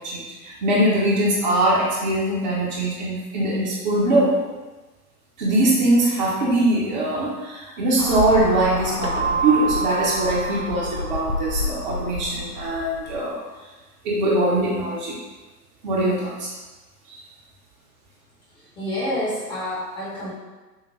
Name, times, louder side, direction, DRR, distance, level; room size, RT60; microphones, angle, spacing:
voice 1, 0.0-4.4 5.4-13.4 14.0-15.2 15.8-16.5 17.1-17.2, right 1 dB, 30° right, -5 dB, 0.8 m, -22 dB
sound 1, 8.0-13.2, left 3 dB, 80° left, 0.8 m, -30 dB
Keyboard (musical), 9.0-11.7, right 5 dB, 50° right, 0.5 m, -28 dB
voice 2, 18.5-20.3, left 1 dB, 10° left, -9 dB, 0.8 m, -28 dB
6.3 x 2.1 x 3.1 m, 1.2 s
figure-of-eight pair, 115°, 48 cm